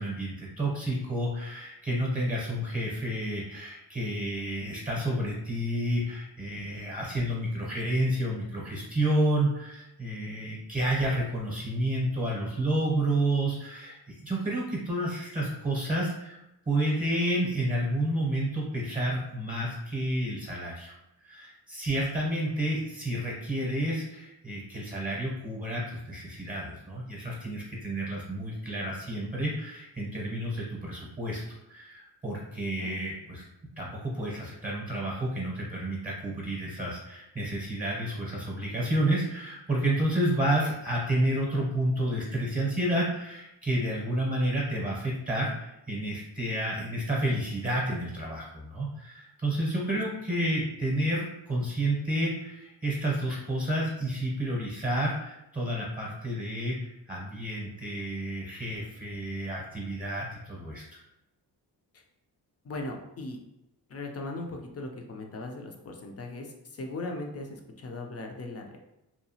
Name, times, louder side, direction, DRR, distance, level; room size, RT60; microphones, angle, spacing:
voice 1, 0.0-16.4 16.7-20.9 21.2-31.4 31.7-33.4 33.8-60.8, right 1 dB, 20° right, -3 dB, 0.8 m, -30 dB
voice 2, 62.6-63.4 63.9-68.8, left 2 dB, 35° left, 2 dB, 0.5 m, -38 dB
2.8 x 2.3 x 2.7 m, 0.88 s
cardioid pair, 80°, 42 cm